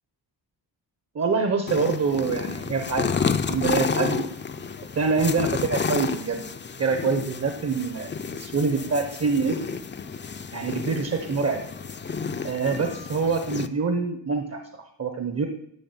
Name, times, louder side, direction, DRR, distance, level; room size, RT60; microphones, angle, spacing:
voice 1, 1.1-3.1 3.5-4.2 4.9-6.4 6.8-9.6 10.5-11.6 12.4-15.5, right 4 dB, 35° right, 6 dB, 0.8 m, -25 dB
sound 1, 1.7-13.7, left 5 dB, 25° left, 0.5 m, -31 dB
11.0 x 6.2 x 7.9 m, 0.76 s
wide cardioid pair, 170°, 42 cm